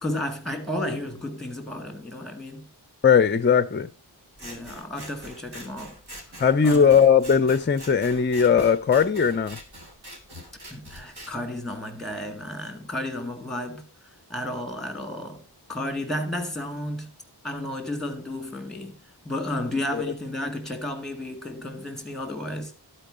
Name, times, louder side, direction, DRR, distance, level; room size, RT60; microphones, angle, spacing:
voice 1, 0.0-2.6 4.4-6.0 6.6-7.0 10.7-13.9 14.3-17.1 17.4-19.0 19.2-22.7, left 1 dB, ahead, 1.8 m, -32 dB
voice 2, 3.0-3.9 6.4-9.6 19.9-20.0, left 7 dB, 30° left, 0.4 m, -19 dB
Scissors, 4.4-11.3, equal, 65° right, 1.7 m, -44 dB
11.5 x 4.5 x 4.9 m
wide cardioid pair, 55°, 42 cm